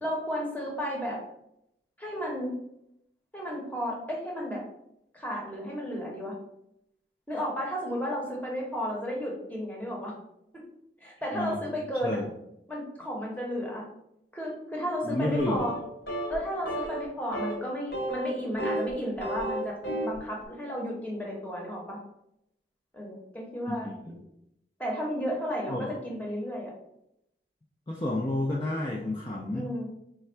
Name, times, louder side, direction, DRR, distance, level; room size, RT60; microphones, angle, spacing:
voice 1, 0.0-1.2 2.0-2.5 3.3-4.6 5.1-6.3 7.3-10.1 11.0-12.2 12.7-13.8 14.3-15.8 16.3-19.8 20.0-22.0 22.9-23.9 24.8-26.7 29.5-29.9, equal, 10° left, -2 dB, 0.8 m, -33 dB
voice 2, 15.0-15.7 23.7-23.8 24.1-24.2 25.7-25.9 27.9-29.7, left 1 dB, 25° left, -3 dB, 0.4 m, -30 dB
sound 1, 15.4-15.8 16.1-16.4 16.7-17.0 17.3-17.6 17.9-18.9 19.2-20.2, right 1 dB, 65° left, 1.0 m, -32 dB
3.3 x 2.3 x 4.3 m, 0.79 s
head